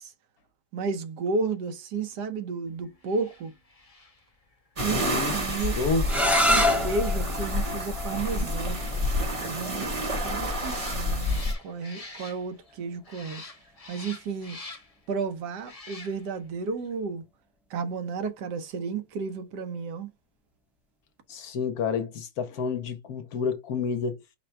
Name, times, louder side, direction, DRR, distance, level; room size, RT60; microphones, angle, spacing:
voice 1, 0.7-3.5 4.8-5.0 5.3-5.8 6.5-8.8 9.4-10.0 10.2-13.4 13.9-14.6 15.1-17.2 17.7-20.1, right 4 dB, 75° right, 1.3 m, -32 dB
sound 1, 3.0-12.8 13.0-15.1 15.6-16.5 16.8-16.9, left 3 dB, 30° left, 0.8 m, -48 dB
sound 2, 4.8-11.5, left 1 dB, 25° right, 0.9 m, -29 dB
voice 2, 4.9-6.1 21.3-24.2, left 5 dB, 65° left, 1.1 m, -30 dB
sound 3, 6.0-11.8, left 1 dB, ahead, 0.3 m, -29 dB
5.0 x 2.2 x 4.3 m
omnidirectional pair, 1.9 m